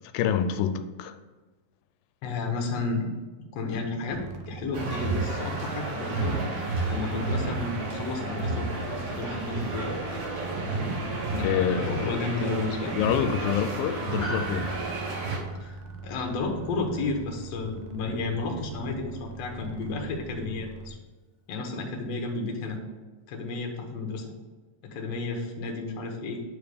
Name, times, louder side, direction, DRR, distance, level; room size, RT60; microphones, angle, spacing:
voice 1, 0.1-1.2 11.4-12.3 13.0-14.7, left 8 dB, 90° left, 2.3 m, -27 dB
voice 2, 2.2-3.1 3.5-10.0 11.3-11.5 11.9-13.0 15.6-21.0 21.5-22.8 23.3-24.3 24.8-26.4, left 3 dB, 60° left, 1.9 m, -32 dB
sound 1, 4.1-20.9, right 4 dB, 85° right, 2.5 m, -42 dB
sound 2, 4.7-15.4, right 2 dB, 60° right, 2.3 m, -31 dB
Piano, 14.2-18.8 19.1-19.2, equal, 45° left, 1.9 m, -42 dB
9.2 x 3.5 x 6.6 m
omnidirectional pair, 4.0 m